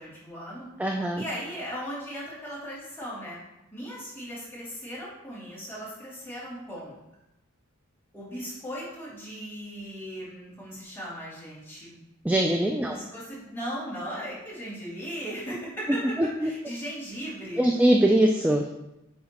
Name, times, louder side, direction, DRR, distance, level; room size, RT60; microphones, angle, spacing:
voice 1, 0.0-3.4 3.7-6.9 8.1-12.0 12.8-17.7, equal, 10° left, -9 dB, 2.4 m, -38 dB
voice 2, 0.8-1.2 12.2-13.0 16.4-16.5 17.6-18.7, right 1 dB, 5° right, 2 dB, 0.3 m, -22 dB
9.4 x 4.2 x 3.0 m, 0.93 s
head